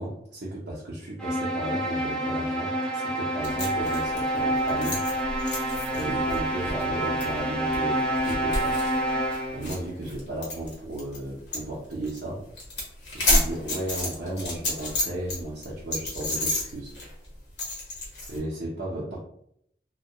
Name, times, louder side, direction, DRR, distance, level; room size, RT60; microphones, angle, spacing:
voice 1, 0.0-5.0 5.9-8.8 9.5-12.4 13.1-16.9 18.3-19.2, right 1 dB, 80° right, -8 dB, 0.6 m, -34 dB
sound 1, 1.2-9.7, right 1 dB, 5° left, 0.3 m, -28 dB
sound 2, 3.4-11.2 11.5-11.7 11.9-12.2 12.5-15.4 15.6-18.4, left 1 dB, 85° left, 0.9 m, -30 dB
2.1 x 2.1 x 2.7 m, 0.72 s
head